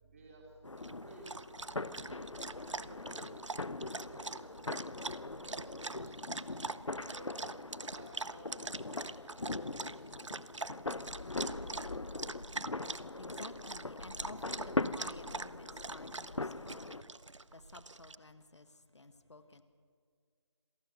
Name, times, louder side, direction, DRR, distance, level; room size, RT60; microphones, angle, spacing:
voice 1, 0.0-1.3 1.6-3.4 3.8-6.3 7.0-7.3 7.9-10.2, right 2 dB, 30° right, -1 dB, 4.1 m, -57 dB
sound 1, 0.6-17.0, left 2 dB, 85° left, 0.9 m, -41 dB
Dog, 0.8-18.1, right 3 dB, 80° right, 0.9 m, -44 dB
voice 2, 11.7-17.2 17.5-19.6, left 3 dB, 65° left, 10 dB, 1.7 m, -53 dB
27.0 x 17.5 x 6.9 m, 2.1 s
figure-of-eight pair, 160°, 15 cm